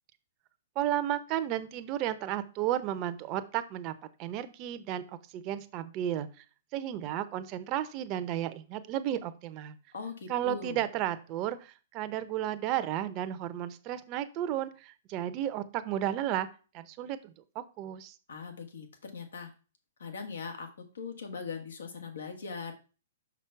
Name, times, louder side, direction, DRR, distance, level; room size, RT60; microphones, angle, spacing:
voice 1, 0.8-3.9 4.2-6.3 6.7-9.8 10.3-16.5 16.7-18.1, right 12 dB, 35° right, 11 dB, 0.8 m, -33 dB
voice 2, 9.9-10.8 18.3-19.5 20.0-22.7, left 5 dB, 75° left, 4 dB, 1.7 m, -40 dB
6.1 x 5.7 x 4.6 m, 0.36 s
hypercardioid pair, 120°, 0 cm